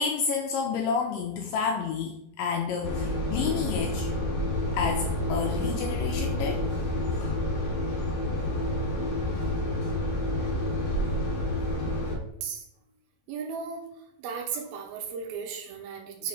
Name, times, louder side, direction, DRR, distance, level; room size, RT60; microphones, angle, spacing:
voice 1, 0.0-4.1 4.7-6.6 7.1-7.4 9.3-9.4, left 6 dB, 80° left, 3 dB, 2.0 m, -30 dB
sound 1, 2.8-12.1, left 1 dB, 50° left, 1.4 m, -29 dB
voice 2, 13.3-13.8 14.2-16.3, right 6 dB, 80° right, 2 dB, 2.8 m, -35 dB
6.2 x 5.3 x 4.0 m, 0.83 s
omnidirectional pair, 4.4 m